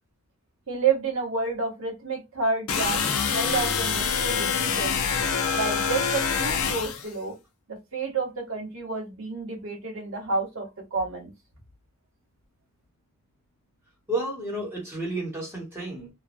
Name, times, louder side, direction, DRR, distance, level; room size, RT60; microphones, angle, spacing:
voice 1, 0.7-5.0 5.5-7.3 7.7-11.3, right 4 dB, 70° right, 1.2 m, -30 dB
sound 1, 2.7-7.1, left 6 dB, 85° left, 0.6 m, -25 dB
voice 2, 14.1-16.1, right 1 dB, 10° right, 1.1 m, -31 dB
3.1 x 2.2 x 2.5 m
head